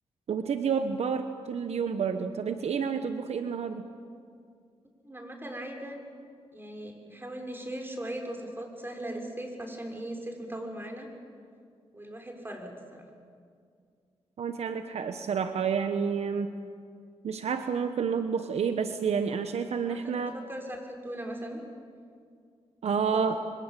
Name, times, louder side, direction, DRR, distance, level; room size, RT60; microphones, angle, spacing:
voice 1, 0.3-3.8 14.4-16.5 17.2-20.3 22.8-23.4, right 6 dB, 70° right, 8 dB, 1.2 m, -29 dB
voice 2, 5.0-6.0 6.5-11.1 11.9-13.1 19.9-21.6 23.0-23.3, right 1 dB, 20° right, 2 dB, 6.0 m, -39 dB
27.5 x 24.0 x 7.6 m, 2.2 s
cardioid pair, 65°, 11 cm